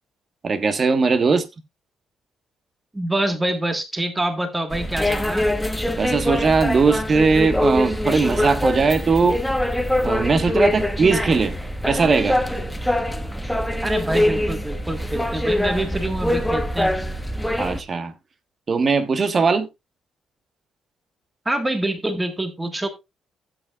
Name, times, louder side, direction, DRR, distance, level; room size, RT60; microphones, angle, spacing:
voice 1, 0.4-1.5 6.0-9.4 10.0-11.6 11.9-12.4 17.6-18.1 18.7-19.7, right 4 dB, 40° right, 1.4 m, -19 dB
voice 2, 2.9-5.5 13.8-16.9 21.4-22.9, right 1 dB, 15° right, 1.6 m, -26 dB
sound 1, 4.7-17.8, left 1 dB, 5° left, 1.0 m, -24 dB
15.0 x 8.1 x 2.4 m
cardioid pair, 90°, 0 cm